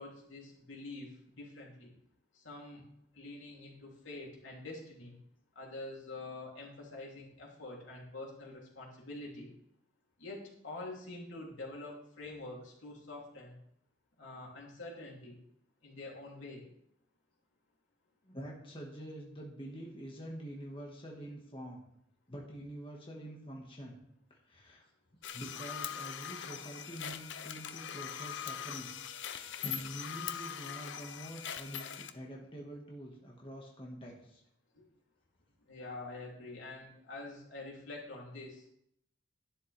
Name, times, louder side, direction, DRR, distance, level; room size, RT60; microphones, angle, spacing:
voice 1, 0.0-1.9 2.3-2.8 3.1-5.2 5.5-9.5 10.2-13.6 14.2-15.4 15.8-16.6 34.7-34.8 35.7-38.6, left 2 dB, 85° left, -3 dB, 3.1 m, -46 dB
voice 2, 18.2-21.8 22.3-24.0 24.3-24.9 25.3-28.9 29.2-34.4, equal, 30° left, -2 dB, 1.7 m, -46 dB
sound 1, 25.2-32.1, left 8 dB, 70° left, 0.6 m, -41 dB
11.5 x 10.0 x 3.5 m, 0.72 s
head